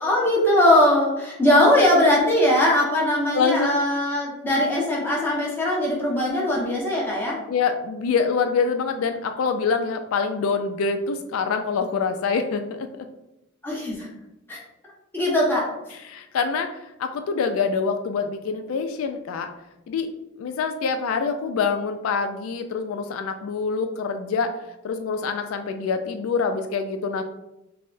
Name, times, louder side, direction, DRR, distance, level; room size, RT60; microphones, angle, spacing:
voice 1, 0.0-7.4 13.6-14.1 14.5-14.6 15.1-15.7, left 1 dB, 10° left, -4 dB, 0.9 m, -20 dB
voice 2, 3.3-3.8 7.5-13.1 16.0-19.5 19.9-20.1 20.4-24.6 24.8-27.2, left 5 dB, 85° left, 7 dB, 0.3 m, -25 dB
5.5 x 2.0 x 2.5 m, 0.91 s
head